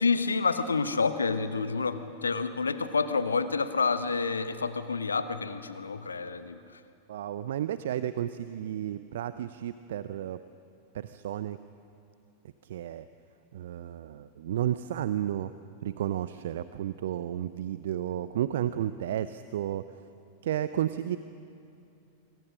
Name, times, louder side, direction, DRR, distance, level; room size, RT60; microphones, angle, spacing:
voice 1, 0.0-6.6, left 4 dB, 75° left, 12 dB, 1.2 m, -28 dB
voice 2, 7.1-10.4 10.9-11.6 12.6-13.1 13.5-15.5 15.8-19.8 20.4-21.2, right 11 dB, 60° right, 14 dB, 0.6 m, -32 dB
27.0 x 23.5 x 6.4 m, 2.6 s
figure-of-eight pair, 90°, 0 cm